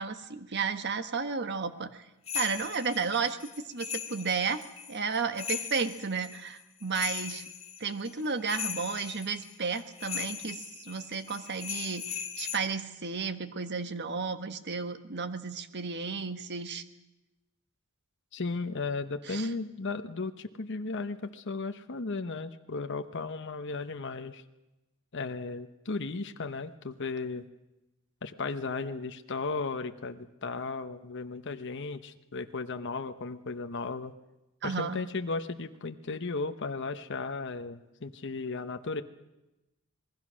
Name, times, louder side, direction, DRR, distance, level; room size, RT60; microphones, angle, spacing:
voice 1, 0.0-1.9 2.3-3.4 3.7-7.4 7.8-16.8 19.3-19.5 34.6-35.0, right 5 dB, 55° right, 10 dB, 1.4 m, -33 dB
sound 1, 2.3-12.6, left 8 dB, 30° left, 2.1 m, -39 dB
voice 2, 18.3-24.4 25.1-27.5 28.2-34.1 34.6-39.0, left 3 dB, 60° left, 7 dB, 1.0 m, -35 dB
27.0 x 20.5 x 6.3 m, 0.97 s
head